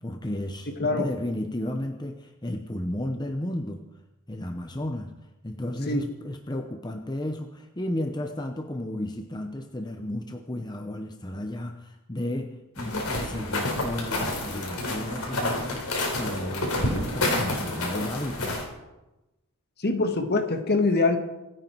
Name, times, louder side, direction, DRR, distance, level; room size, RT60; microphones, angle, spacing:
voice 1, 0.0-3.8 4.3-5.1 5.4-18.6, left 1 dB, 20° left, 5 dB, 0.8 m, -33 dB
sound 1, 12.8-18.6, left 2 dB, 80° left, 4.3 m, -29 dB
voice 2, 19.8-21.2, left 3 dB, 50° left, 6 dB, 1.6 m, -24 dB
26.0 x 9.4 x 4.6 m, 1.0 s
head